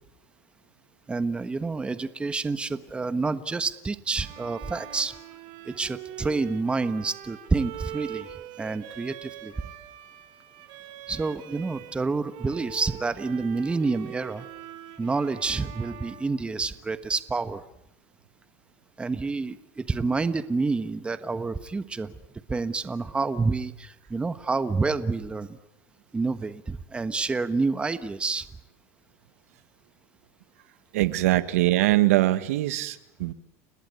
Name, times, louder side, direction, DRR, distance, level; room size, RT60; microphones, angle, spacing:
voice 1, 1.1-5.1 5.7-8.3 8.6-9.5 11.1-14.5 15.0-17.6 19.0-22.1 22.5-25.6 26.1-28.4, right 3 dB, 15° right, 12 dB, 1.3 m, -28 dB
Bowed string instrument, 4.1-12.0 12.3-17.1, right 11 dB, 60° right, 3.6 m, -43 dB
voice 2, 30.9-33.3, right 16 dB, 90° right, 13 dB, 1.5 m, -22 dB
30.0 x 19.5 x 9.5 m, 0.84 s
supercardioid pair, 120°, 8 cm